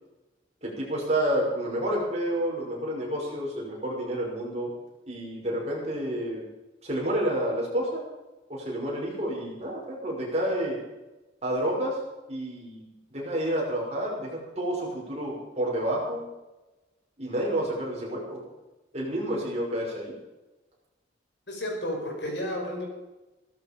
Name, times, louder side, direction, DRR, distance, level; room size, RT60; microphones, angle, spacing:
voice 1, 0.6-4.7 5.1-6.4 6.8-8.0 8.5-10.8 11.4-12.0 12.3-16.3 17.2-18.4 18.9-20.1, right 1 dB, 35° right, -3 dB, 5.7 m, -29 dB
voice 2, 21.5-22.9, left 1 dB, 70° left, 1 dB, 5.0 m, -32 dB
16.0 x 13.0 x 5.3 m, 1.1 s
head